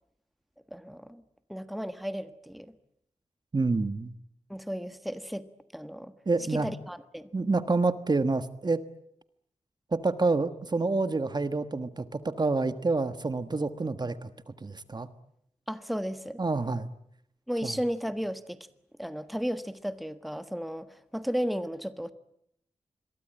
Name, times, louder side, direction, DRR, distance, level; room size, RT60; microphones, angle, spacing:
voice 1, 0.7-1.2 1.5-2.7 4.5-6.1 6.5-7.3 15.7-16.4 17.5-18.6 19.0-22.1, equal, ahead, 11 dB, 1.4 m, -34 dB
voice 2, 3.5-4.1 6.3-6.7 7.3-8.8 9.9-14.3 14.6-15.1 16.4-16.9 17.6-17.8, right 3 dB, 35° right, 11 dB, 1.4 m, -28 dB
27.0 x 23.0 x 8.9 m, 0.73 s
wide cardioid pair, 95°, 12 cm